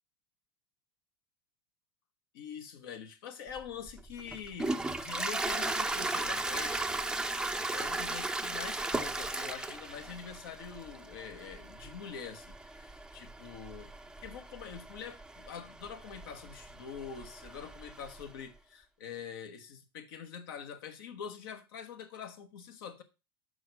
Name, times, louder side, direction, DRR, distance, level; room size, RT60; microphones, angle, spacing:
voice 1, 2.3-6.9 7.6-13.9 14.2-23.0, left 7 dB, 70° left, 1.1 m, -45 dB
Toilet flush, 3.6-18.3, right 2 dB, 5° right, 0.5 m, -37 dB
6.2 x 4.8 x 5.1 m
hypercardioid pair, 85°, 12 cm